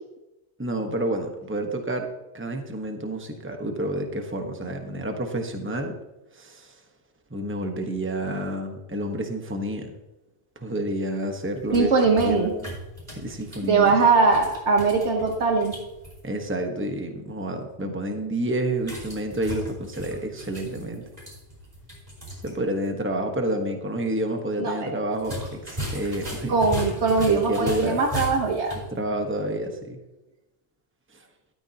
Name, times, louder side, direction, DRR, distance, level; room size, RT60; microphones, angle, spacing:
voice 1, 0.6-2.1 2.3-6.0 6.3-6.7 7.3-9.9 10.5-12.7 13.2-14.0 16.2-21.0 22.4-26.5 27.1-28.0 28.7-30.0, right 1 dB, 10° right, 4 dB, 1.3 m, -29 dB
sound 1, 11.5-16.2 18.8-22.5 22.8-22.9 25.1-28.9, equal, 35° right, 4.9 m, -36 dB
voice 2, 11.7-12.5 13.6-15.8 24.6-24.9 26.5-28.8, right 4 dB, 80° right, 2 dB, 1.5 m, -21 dB
13.5 x 13.0 x 2.9 m, 1.0 s
omnidirectional pair, 1.1 m